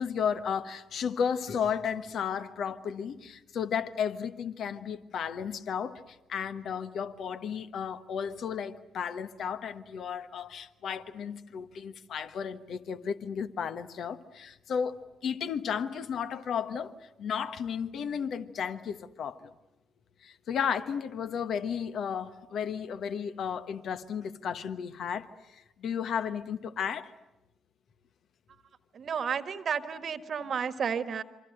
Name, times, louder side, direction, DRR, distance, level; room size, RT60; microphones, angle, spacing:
voice 1, 0.0-19.5 20.2-27.1, left 7 dB, 60° left, 1.2 m, -34 dB
voice 2, 28.9-31.2, right 7 dB, 50° right, 1.4 m, -32 dB
27.5 x 25.0 x 7.9 m
hypercardioid pair, 45°, 0 cm